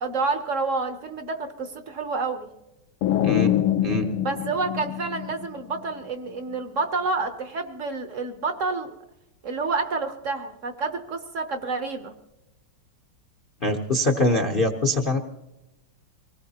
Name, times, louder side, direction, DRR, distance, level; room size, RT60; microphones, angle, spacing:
voice 1, 0.0-2.5 4.2-8.9 9.4-12.1, right 4 dB, 55° right, 8 dB, 0.9 m, -29 dB
sound 1, 3.0-5.8, left 12 dB, 90° left, 1.6 m, -25 dB
voice 2, 13.6-15.2, left 2 dB, 55° left, 4 dB, 0.5 m, -23 dB
25.0 x 19.0 x 2.9 m, 0.99 s
omnidirectional pair, 2.3 m